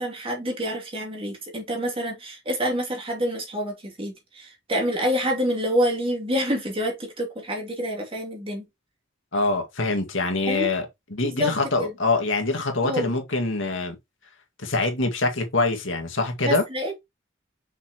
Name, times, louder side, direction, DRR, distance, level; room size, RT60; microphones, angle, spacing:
voice 1, 0.0-8.7 10.5-10.7 11.2-11.5 11.8-11.9 12.8-13.1 16.4-17.0, equal, 30° right, 2.7 m, -27 dB
voice 2, 9.3-14.0 14.6-16.6, left 3 dB, 85° left, 2.0 m, -24 dB
6.0 x 5.8 x 3.0 m
head